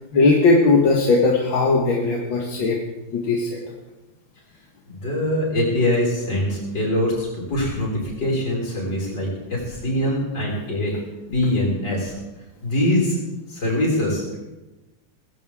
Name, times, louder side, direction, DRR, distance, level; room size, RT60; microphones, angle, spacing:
voice 1, 0.1-2.8 3.1-3.6, left 3 dB, 90° left, -1 dB, 2.4 m, -18 dB
voice 2, 4.9-10.9 11.3-12.1 12.6-13.2 13.5-14.2, left 1 dB, 65° left, -4 dB, 6.6 m, -23 dB
20.5 x 15.5 x 3.7 m, 1.1 s
omnidirectional pair, 2.1 m